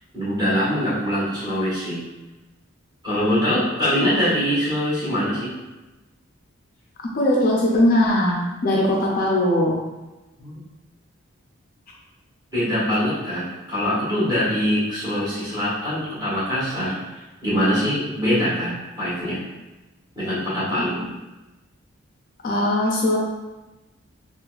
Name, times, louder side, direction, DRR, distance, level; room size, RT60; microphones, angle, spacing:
voice 1, 0.1-2.0 3.0-5.5 10.4-10.5 12.5-19.4 20.1-21.0, equal, 20° right, -11 dB, 1.4 m, -23 dB
voice 2, 7.1-9.8 20.8-20.9 22.4-23.2, left 1 dB, 40° left, -2 dB, 0.4 m, -20 dB
3.8 x 2.4 x 2.3 m, 1.1 s
head